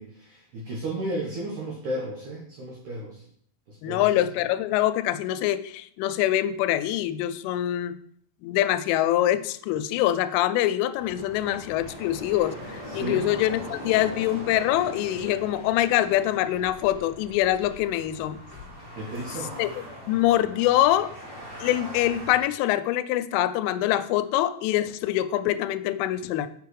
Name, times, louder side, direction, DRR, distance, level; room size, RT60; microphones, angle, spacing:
voice 1, 0.0-3.2 3.7-4.2 12.9-13.2 18.9-19.5, right 1 dB, 80° right, -1 dB, 1.7 m, -34 dB
voice 2, 3.8-8.0 8.4-18.4 19.6-19.7 20.1-21.1 21.6-26.5, left 13 dB, 85° left, 12 dB, 3.0 m, -24 dB
sound 1, 11.0-22.4, equal, 25° right, 0.5 m, -41 dB
6.9 x 6.5 x 4.7 m, 0.63 s
omnidirectional pair, 5.6 m